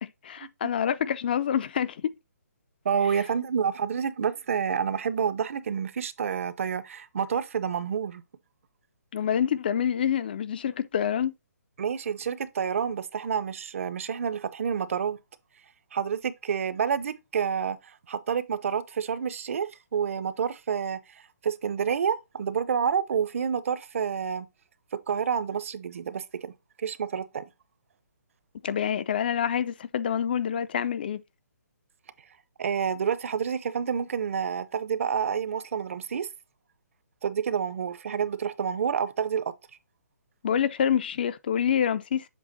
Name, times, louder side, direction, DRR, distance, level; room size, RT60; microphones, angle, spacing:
voice 1, 0.0-2.0 9.1-11.3 28.6-31.2 40.4-42.3, left 8 dB, 35° left, 0.3 m, -27 dB
voice 2, 2.8-8.2 11.8-15.2 15.9-17.8 18.1-21.0 21.4-24.5 24.9-26.5 26.8-27.4 32.6-36.3 37.2-39.5, right 7 dB, 50° right, 0.6 m, -28 dB
7.4 x 3.4 x 4.0 m
hypercardioid pair, 165°, 9 cm